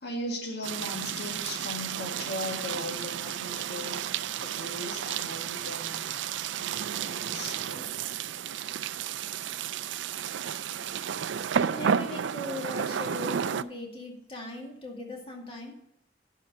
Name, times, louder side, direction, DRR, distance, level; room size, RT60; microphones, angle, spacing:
voice 1, 0.0-6.0 6.6-8.0 8.5-8.6 10.4-10.5, left 1 dB, 65° left, 3 dB, 1.8 m, -38 dB
sound 1, 0.6-13.6, right 8 dB, 80° right, 0.4 m, -32 dB
voice 2, 11.7-15.8, left 2 dB, 30° left, 0 dB, 2.2 m, -39 dB
10.5 x 4.8 x 6.7 m, 0.73 s
head